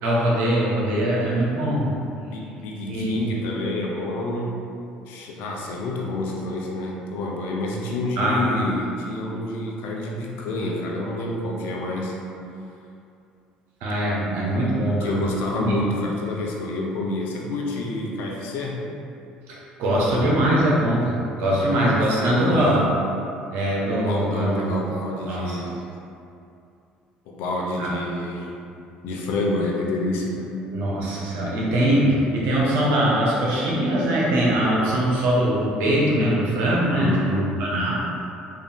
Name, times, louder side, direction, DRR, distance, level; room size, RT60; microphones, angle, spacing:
voice 1, 0.0-1.9 2.9-3.2 8.2-8.4 13.8-15.2 15.5-15.8 19.5-22.8 23.5-24.6 25.3-25.6 27.8-27.9 30.7-37.9, right 1 dB, 75° right, -5 dB, 0.9 m, -22 dB
voice 2, 2.2-4.5 5.1-12.2 15.0-18.8 22.2-22.9 23.9-25.8 27.3-28.6 29.0-30.5 37.0-37.5, left 2 dB, 75° left, -1 dB, 0.6 m, -28 dB
3.7 x 2.5 x 3.5 m, 2.6 s
supercardioid pair, 80°, 3 cm